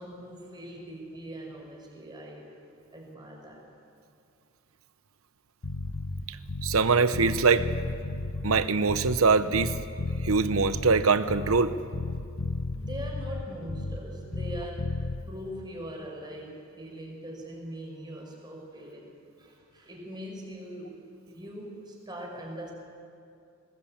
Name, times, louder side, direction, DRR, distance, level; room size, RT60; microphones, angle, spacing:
voice 1, 0.0-2.5 2.9-3.7 12.7-19.1 19.4-22.7, equal, 20° right, -1 dB, 5.4 m, -42 dB
Bass guitar, 5.6-6.9 7.1-9.3 9.5-11.7 11.9-14.1 14.3-15.2, left 2 dB, 65° left, 1.2 m, -33 dB
voice 2, 6.6-7.7 8.4-9.7 10.2-11.7, right 4 dB, 90° right, 12 dB, 0.9 m, -23 dB
21.0 x 19.5 x 8.7 m, 2.4 s
head